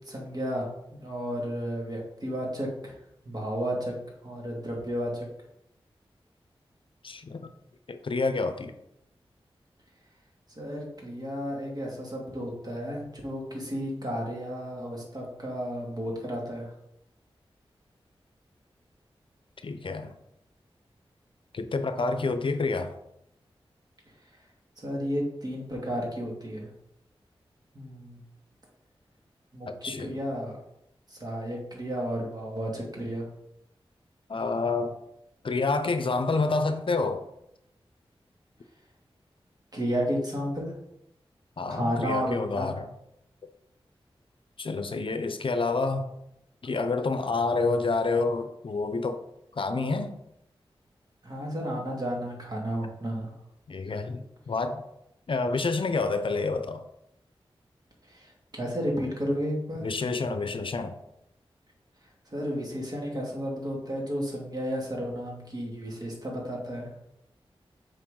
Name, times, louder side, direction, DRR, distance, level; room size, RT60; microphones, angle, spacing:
voice 1, 0.1-2.9 3.2-3.9 4.2-5.3 10.6-16.7 24.8-26.7 27.7-28.2 29.5-30.6 31.1-33.3 39.7-40.7 41.7-42.7 51.2-53.3 58.1-59.9 62.3-66.9, equal, 40° right, -2 dB, 2.5 m, -32 dB
voice 2, 7.0-7.4 7.9-8.7 19.6-20.1 21.5-23.0 29.8-30.1 34.3-35.0 35.4-37.2 41.6-42.9 44.6-46.1 46.6-49.2 49.6-50.2 53.7-54.9 55.3-56.8 59.8-61.0, left 3 dB, 60° left, 9 dB, 0.6 m, -28 dB
7.5 x 4.6 x 3.8 m, 0.81 s
cardioid pair, 55°, 10 cm